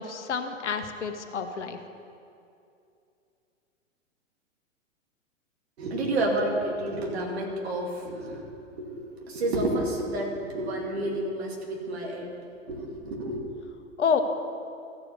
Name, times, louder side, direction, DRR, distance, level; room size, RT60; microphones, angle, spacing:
voice 1, 0.0-1.8 14.0-14.2, left 6 dB, 65° left, 7 dB, 1.0 m, -28 dB
voice 2, 5.8-8.4 8.8-12.3 12.7-13.4, right 1 dB, 55° right, -1 dB, 2.4 m, -30 dB
14.0 x 4.9 x 8.1 m, 2.6 s
figure-of-eight pair, 105°, 38 cm